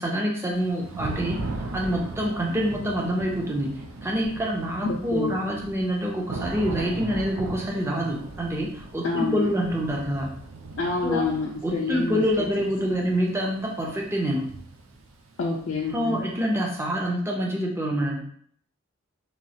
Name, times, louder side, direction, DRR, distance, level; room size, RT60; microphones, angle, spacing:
voice 1, 0.0-1.4 1.7-10.3 11.0-11.3 11.6-14.5 15.9-18.2, equal, 15° right, -1 dB, 0.5 m, -26 dB
Thunder / Rain, 0.5-16.3, right 2 dB, 85° right, 0.5 m, -38 dB
voice 2, 4.8-5.4 9.0-9.5 10.8-12.5 13.0-13.1 15.4-16.3, left 4 dB, 65° left, -2 dB, 0.4 m, -28 dB
3.0 x 2.3 x 2.7 m, 0.63 s
head